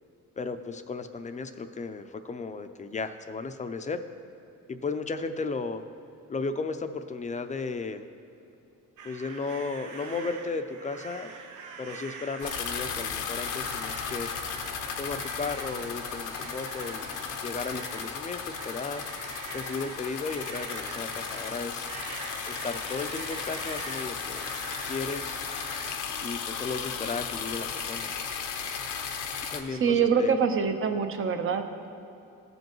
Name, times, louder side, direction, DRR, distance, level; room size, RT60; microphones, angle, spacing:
voice 1, 0.4-4.0 4.7-5.8 6.3-8.1 9.0-11.3 11.8-14.3 15.0-19.0 19.5-21.9 22.5-24.5 24.9-25.5 26.2-28.1 29.5-30.4, left 4 dB, 25° left, 8 dB, 0.5 m, -35 dB
sound 1, 9.0-25.9, right 5 dB, 80° right, 0.8 m, -44 dB
sound 2, 12.4-29.6, left 6 dB, 85° left, 0.7 m, -35 dB
voice 2, 29.8-31.9, right 6 dB, 45° right, 7 dB, 0.8 m, -25 dB
15.5 x 5.3 x 3.0 m, 2.7 s
cardioid pair, 90°, 30 cm